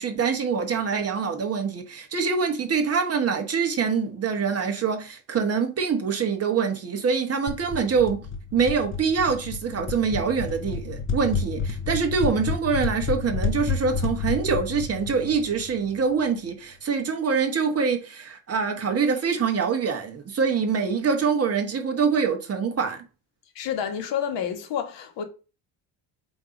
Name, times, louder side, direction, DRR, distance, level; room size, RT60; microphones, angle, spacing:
voice 1, 0.0-8.2 8.5-23.0, right 5 dB, 30° right, 1.2 m, -25 dB
sound 1, 7.5-16.1, left 5 dB, 25° left, 0.7 m, -30 dB
voice 2, 23.5-25.2, left 8 dB, 70° left, 1.5 m, -29 dB
7.7 x 2.8 x 5.1 m
cardioid pair, 150°, 46 cm